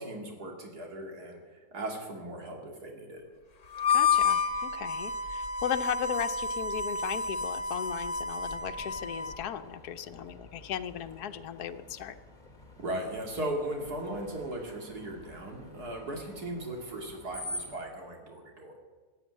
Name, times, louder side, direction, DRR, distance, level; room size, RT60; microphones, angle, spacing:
voice 1, 0.0-1.4 1.7-3.3 12.8-18.8, right 1 dB, 80° right, 1 dB, 2.9 m, -37 dB
Harmonica, 3.7-9.4, left 5 dB, 55° left, 1.8 m, -30 dB
voice 2, 3.9-12.2, left 9 dB, 80° left, 10 dB, 1.3 m, -36 dB
Screech, 8.5-17.9, left 1 dB, 30° left, 2.4 m, -48 dB
15.5 x 8.9 x 9.4 m, 1.4 s
omnidirectional pair, 1.7 m